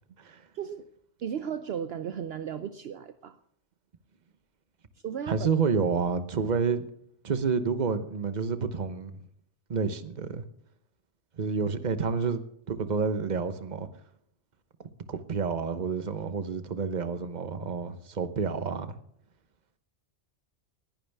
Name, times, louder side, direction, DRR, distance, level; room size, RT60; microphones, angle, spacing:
voice 1, 0.5-0.9 1.2-3.4 5.0-5.5, right 8 dB, 65° right, 10 dB, 0.9 m, -35 dB
voice 2, 5.3-6.9 7.2-9.2 9.7-10.4 11.4-12.4 12.7-13.9 14.8-18.9, right 5 dB, 40° right, 11 dB, 1.0 m, -29 dB
19.5 x 11.0 x 3.5 m, 0.71 s
omnidirectional pair, 1.2 m